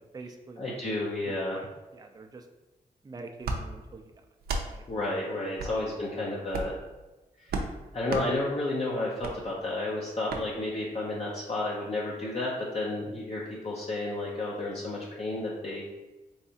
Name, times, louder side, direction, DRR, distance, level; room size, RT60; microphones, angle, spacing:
voice 1, 0.0-0.8 1.2-2.5 3.0-4.1 4.6-4.8 5.6-6.0, right 3 dB, 25° right, 5 dB, 0.4 m, -46 dB
voice 2, 0.6-1.6 4.9-6.7 7.4-7.5 7.9-15.8, left 2 dB, 40° left, -4 dB, 0.6 m, -31 dB
sound 1, 3.4-3.6 4.4-4.7 5.6-5.7 6.5-6.8 7.5-7.7 8.1-8.3 9.2-9.3 10.3-10.4, right 3 dB, 80° right, 0.5 m, -32 dB
3.5 x 3.2 x 2.7 m, 1.1 s
cardioid pair, 55°, 16 cm